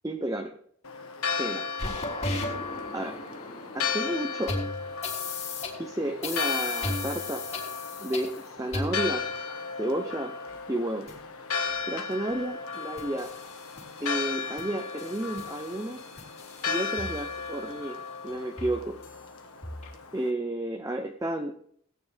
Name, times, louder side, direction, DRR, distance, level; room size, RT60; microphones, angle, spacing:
voice 1, 0.0-0.6 1.4-1.7 2.9-3.2 3.7-4.6 5.8-7.4 8.0-9.2 9.8-10.3 10.7-11.1 11.8-13.3 14.0-16.1 16.7-18.0 18.2-19.0 20.1-21.5, right 1 dB, 15° right, 5 dB, 0.7 m, -32 dB
Church bell, 0.8-20.3, left 5 dB, 75° left, 1.4 m, -35 dB
sound 1, 1.8-5.8 6.2-8.4 8.7-9.3 10.5-10.6 11.1-11.2 11.7-11.8 12.3-12.4 12.7-14.3 14.6-17.8 18.3-18.4 18.6-19.2 19.6-19.9, left 2 dB, 30° left, 3.4 m, -37 dB
17.5 x 9.6 x 3.5 m, 0.63 s
head